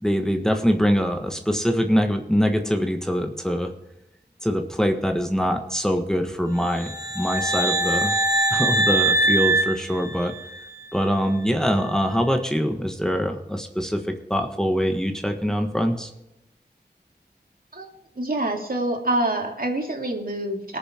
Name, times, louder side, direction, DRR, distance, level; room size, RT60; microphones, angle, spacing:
voice 1, 0.0-3.7 4.4-8.1 8.5-10.3 10.9-16.1, equal, 5° left, 4 dB, 1.4 m, -23 dB
sound 1, 6.7-10.7, right 2 dB, 20° right, 1.8 m, -23 dB
voice 2, 18.1-20.8, right 1 dB, 55° right, 1 dB, 2.7 m, -26 dB
19.5 x 7.2 x 4.4 m, 0.88 s
wide cardioid pair, 50°, 17 cm